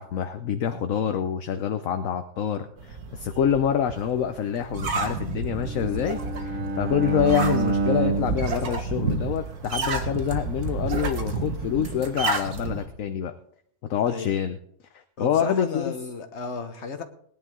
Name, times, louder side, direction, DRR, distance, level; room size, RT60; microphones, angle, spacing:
voice 1, 0.0-13.3 13.9-14.6 14.9-15.9, left 9 dB, 65° left, 8 dB, 1.2 m, -26 dB
sound 1, 2.8-12.9, right 3 dB, 85° right, 2.1 m, -30 dB
Bowed string instrument, 5.5-9.7, right 4 dB, 60° right, 1.4 m, -28 dB
voice 2, 14.1-14.4 15.2-17.0, left 4 dB, 50° left, 7 dB, 1.5 m, -34 dB
19.0 x 10.5 x 3.7 m, 0.66 s
omnidirectional pair, 1.6 m